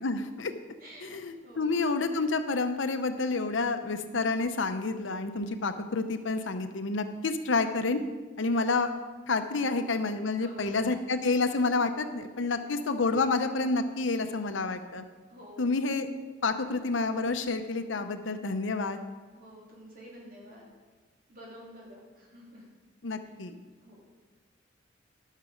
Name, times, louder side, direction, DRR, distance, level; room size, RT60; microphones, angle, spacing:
voice 1, 0.0-0.5 1.0-8.0 8.4-8.9 9.3-15.0 15.6-16.1 16.4-19.0 23.0-23.5, left 3 dB, 80° left, 9 dB, 0.7 m, -29 dB
voice 2, 0.8-1.2 1.4-1.7 9.6-10.0 10.4-10.8 12.6-12.8 15.3-15.7 19.3-20.7 21.3-22.6 23.2-23.3 23.8-24.0, equal, 50° right, -5 dB, 3.3 m, -49 dB
12.0 x 6.7 x 5.1 m, 1.4 s
head